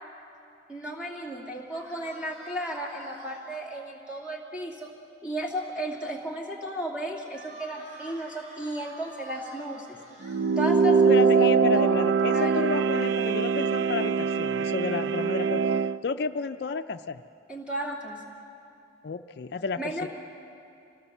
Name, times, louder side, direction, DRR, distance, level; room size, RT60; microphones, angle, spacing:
voice 1, 0.7-4.9 5.2-10.0 10.6-11.9 12.3-12.7 17.5-18.3 19.8-20.1, right 1 dB, 5° right, -3 dB, 2.7 m, -34 dB
sound 1, 1.7-3.6 7.3-11.6, right 1 dB, 40° right, 3.3 m, -48 dB
sound 2, 10.2-16.0, right 5 dB, 90° right, 0.4 m, -23 dB
voice 2, 11.1-15.6 16.0-17.2 19.0-20.1, left 4 dB, 60° left, 9 dB, 0.4 m, -31 dB
25.5 x 17.5 x 7.1 m, 2.6 s
head